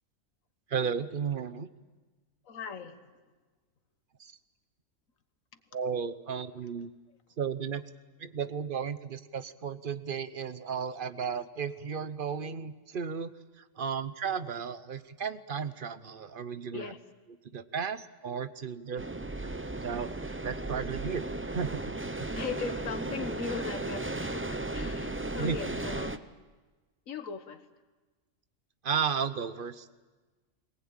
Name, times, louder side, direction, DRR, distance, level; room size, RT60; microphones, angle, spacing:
voice 1, 0.7-1.7 4.2-4.3 5.7-6.9 7.4-7.8 8.2-16.9 17.5-19.6 19.8-22.4 25.4-25.6 28.8-29.9, right 6 dB, 45° right, 13 dB, 1.0 m, -34 dB
voice 2, 2.5-3.0 16.7-17.0 22.3-26.3 27.1-27.6, left 5 dB, 85° left, 9 dB, 1.7 m, -38 dB
sound 1, 19.0-26.2, right 2 dB, 15° right, 0.5 m, -35 dB
22.5 x 18.5 x 8.8 m, 1.3 s
omnidirectional pair, 1.3 m